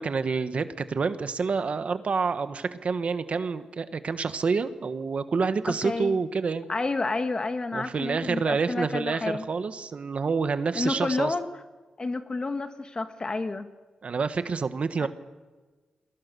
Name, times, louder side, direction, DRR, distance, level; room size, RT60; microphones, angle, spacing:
voice 1, 0.0-6.7 7.7-11.3 14.0-15.1, right 5 dB, 55° right, 10 dB, 1.4 m, -28 dB
voice 2, 5.8-6.2 6.7-9.5 10.8-11.5 12.0-13.7 15.0-15.1, left 3 dB, 35° left, 8 dB, 1.8 m, -30 dB
29.0 x 22.5 x 7.0 m, 1.3 s
wide cardioid pair, 105°, 3 cm